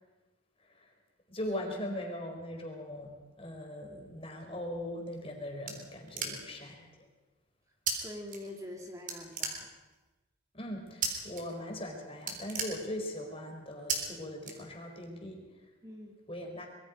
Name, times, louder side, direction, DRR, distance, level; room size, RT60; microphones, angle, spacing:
voice 1, 1.3-6.9 10.5-15.4 16.3-16.7, left 1 dB, 30° left, 2 dB, 4.1 m, -40 dB
sound 1, 5.0-6.7 7.9-8.0 8.3-8.8 9.1-10.0 11.0-11.4 11.7-11.9 12.2-13.3 13.9-14.0 14.4-15.1, right 5 dB, 40° right, 3.7 m, -35 dB
voice 2, 7.9-9.7 15.8-16.1, left 1 dB, 15° right, 1 dB, 2.1 m, -44 dB
25.0 x 22.0 x 5.1 m, 1.1 s
head